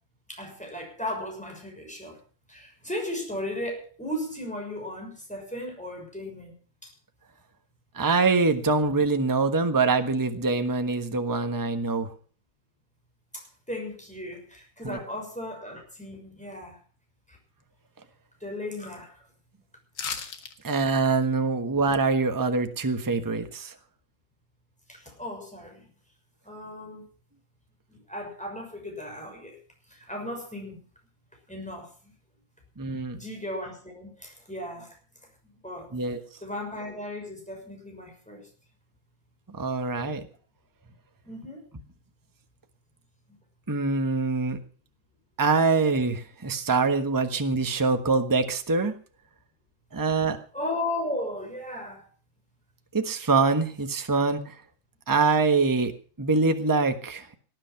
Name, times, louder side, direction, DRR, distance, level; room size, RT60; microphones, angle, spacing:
voice 1, 0.3-2.2 2.5-6.5 6.8-6.9 13.3-16.8 17.3-17.4 18.4-19.3 24.9-25.9 26.4-27.1 27.9-29.6 29.9-30.8 31.5-32.1 33.1-34.9 35.4-35.9 36.4-38.5 41.2-41.6 50.5-52.0, left 1 dB, 5° left, 1 dB, 6.4 m, -36 dB
voice 2, 7.9-12.1 14.8-15.0 20.6-23.7 32.8-33.2 35.9-36.2 39.6-40.3 43.7-44.6 45.4-48.9 49.9-50.4 52.9-54.6 55.1-55.9 56.2-57.3, right 4 dB, 10° right, 7 dB, 1.1 m, -24 dB
sound 1, 19.9-20.5 20.9-21.0, left 6 dB, 70° left, 2.2 m, -34 dB
19.0 x 10.5 x 5.8 m, 0.40 s
omnidirectional pair, 2.0 m